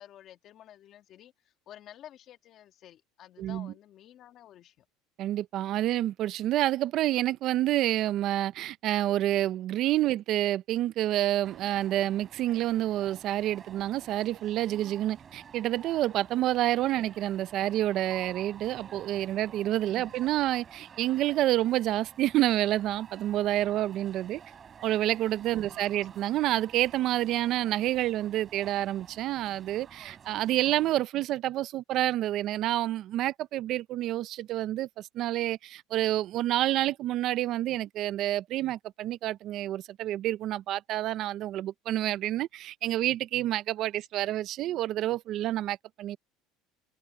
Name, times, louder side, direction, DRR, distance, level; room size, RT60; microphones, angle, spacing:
voice 1, 0.0-4.9 19.9-20.2 25.6-25.9, left 11 dB, 40° left, 1.8 m, -52 dB
voice 2, 3.4-3.7 5.2-24.4 24.8-46.2, right 14 dB, 45° right, 0.5 m, -28 dB
sound 1, 11.4-31.0, right 7 dB, 25° right, 5.7 m, -51 dB
cardioid pair, 145°, 0 cm